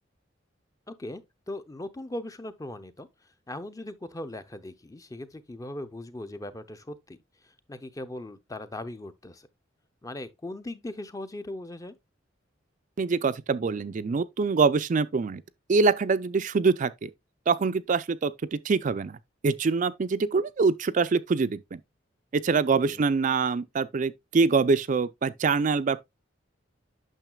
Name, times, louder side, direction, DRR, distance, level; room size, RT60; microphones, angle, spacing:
voice 1, 0.9-3.1 3.5-7.2 7.4-9.5 10.0-11.9 22.9-23.0, left 1 dB, 20° left, 0.6 m, -39 dB
voice 2, 13.0-15.4 15.7-17.1 17.5-19.2 19.4-21.6 22.3-26.0, right 4 dB, 40° right, 0.4 m, -24 dB
9.0 x 6.3 x 2.3 m
head